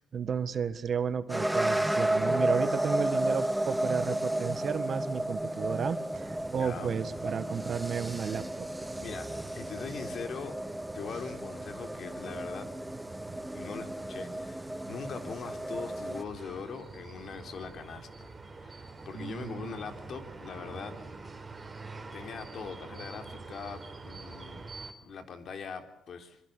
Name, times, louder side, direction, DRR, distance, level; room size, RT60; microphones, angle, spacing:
voice 1, 0.0-8.7 19.1-19.7, right 7 dB, 45° right, 12 dB, 1.8 m, -33 dB
sound 1, 1.3-16.2, right 1 dB, 5° right, 1.2 m, -33 dB
sound 2, 6.1-24.9, right 3 dB, 20° right, 4.4 m, -46 dB
voice 2, 6.6-6.9 9.0-9.3 9.5-10.6 10.9-12.7 13.5-18.3 18.6-21.0 22.1-24.6 25.0-26.4, left 5 dB, 55° left, 7 dB, 3.7 m, -41 dB
26.0 x 22.5 x 8.4 m, 0.73 s
cardioid pair, 85°, 0 cm